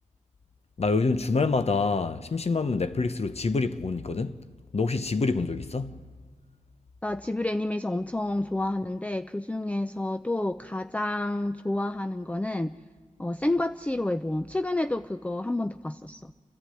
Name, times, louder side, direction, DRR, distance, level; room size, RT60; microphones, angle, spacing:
voice 1, 0.8-4.4 4.7-6.0, left 4 dB, 50° left, 1.0 m, -26 dB
voice 2, 7.0-12.8 13.2-16.3, left 1 dB, 10° left, 0.5 m, -29 dB
28.5 x 11.5 x 9.2 m
cardioid pair, 55°, 14 cm